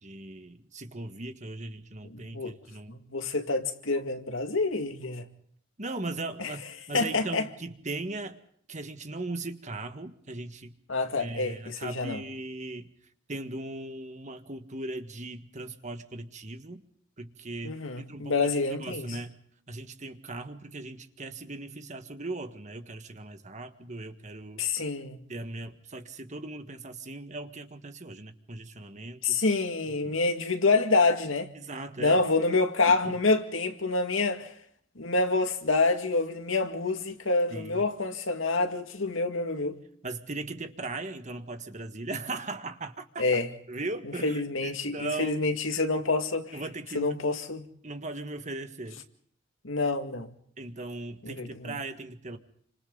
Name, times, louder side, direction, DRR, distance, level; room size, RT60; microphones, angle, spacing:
voice 1, 0.0-3.0 5.8-8.4 8.7-10.8 11.2-12.9 13.3-16.8 17.2-18.5 18.8-19.4 19.7-24.7 25.3-29.4 30.0-30.2 31.6-32.2 32.8-33.2 37.5-37.9 40.0-43.3 43.7-45.4 45.7-45.8 46.5-47.2 47.8-49.0 50.6-52.4, right 2 dB, 35° right, 1.7 m, -38 dB
voice 2, 2.1-2.6 2.9-5.3 6.4-6.5 6.9-7.5 10.9-12.2 17.6-19.2 24.6-25.2 29.2-31.5 32.0-34.5 35.0-39.8 43.2-43.5 44.0-46.6 46.9-47.6 49.6-50.3 51.3-51.7, left 3 dB, 85° left, 2.2 m, -27 dB
30.0 x 26.0 x 4.0 m
head